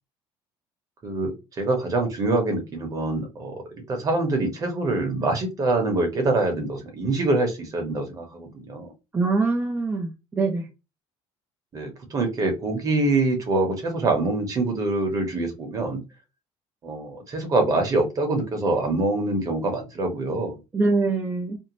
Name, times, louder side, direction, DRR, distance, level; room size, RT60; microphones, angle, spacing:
voice 1, 1.0-3.5 3.9-8.9 11.7-16.0 16.8-20.5, right 2 dB, 35° right, 0.9 m, -25 dB
voice 2, 9.1-10.7 20.7-21.6, right 3 dB, 15° right, 0.5 m, -23 dB
2.6 x 2.1 x 3.0 m
cardioid pair, 135°, 11 cm